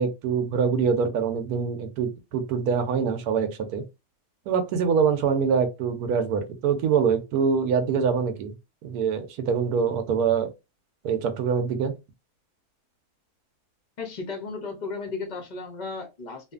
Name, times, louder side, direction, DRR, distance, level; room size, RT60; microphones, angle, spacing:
voice 1, 0.0-3.8 4.5-8.5 8.8-10.5 11.0-11.9, right 6 dB, 85° right, 1.1 m, -24 dB
voice 2, 14.0-16.5, left 4 dB, 50° left, 0.5 m, -35 dB
2.7 x 2.4 x 2.3 m
omnidirectional pair, 1.6 m